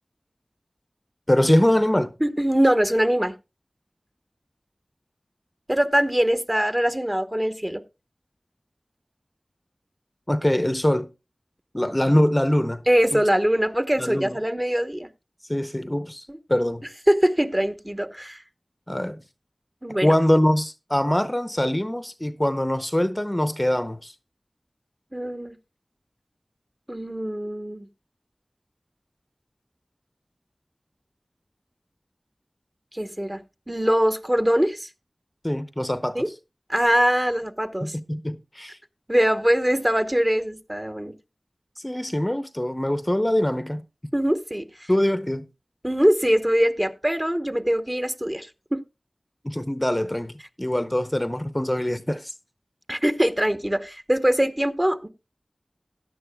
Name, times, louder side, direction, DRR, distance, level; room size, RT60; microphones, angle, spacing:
voice 1, 1.3-2.1 10.3-11.1 11.7-13.2 14.0-14.4 15.5-16.9 18.9-19.2 20.0-24.1 35.4-36.3 37.8-38.8 41.8-43.8 44.9-45.5 49.4-52.3, left 1 dB, 20° left, 0.6 m, -23 dB
voice 2, 2.2-3.3 5.7-7.8 12.9-15.1 16.3-16.4 17.1-18.4 19.8-20.1 25.1-25.5 26.9-27.9 32.9-33.4 33.7-34.9 36.1-36.3 36.7-37.9 39.1-41.1 44.1-44.6 45.8-48.8 52.9-55.1, equal, 20° right, 0.9 m, -22 dB
16.5 x 10.5 x 2.2 m
wide cardioid pair, 40°, 0 cm